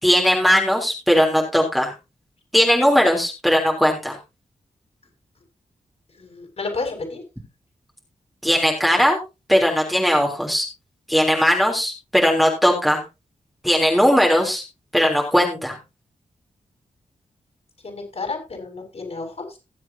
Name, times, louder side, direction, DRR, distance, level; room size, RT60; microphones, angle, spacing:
voice 1, 0.0-1.9 2.5-4.2 8.4-9.2 9.5-10.6 11.1-13.0 13.6-14.6 14.9-15.8, equal, ahead, 0 dB, 3.3 m, -18 dB
voice 2, 6.2-7.2 17.8-19.6, left 3 dB, 50° left, 2 dB, 5.9 m, -31 dB
19.5 x 7.8 x 2.8 m, 0.27 s
cardioid pair, 85°, 13 cm